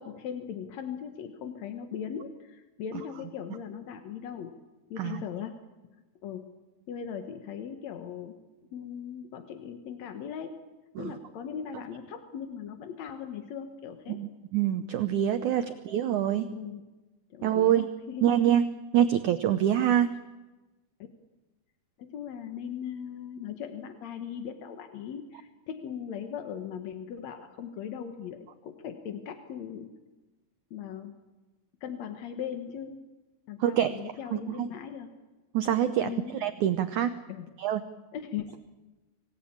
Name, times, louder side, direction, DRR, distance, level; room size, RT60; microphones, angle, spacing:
voice 1, 0.0-4.6 4.9-5.6 6.2-6.5 6.9-8.3 8.7-10.6 11.0-14.2 15.5-15.8 16.5-16.9 17.3-18.3 22.0-29.9 30.7-31.1 31.8-33.0 33.5-35.1 36.0-36.4 37.3-37.5 38.1-38.6, left 8 dB, 60° left, 6 dB, 1.9 m, -39 dB
voice 2, 14.1-16.5 17.4-17.9 18.2-18.6 18.9-20.1 33.6-33.9 34.3-34.7 35.5-36.1 36.4-37.1 37.6-37.8, right 10 dB, 90° right, 10 dB, 1.7 m, -25 dB
26.0 x 18.0 x 8.7 m, 1.1 s
omnidirectional pair, 4.7 m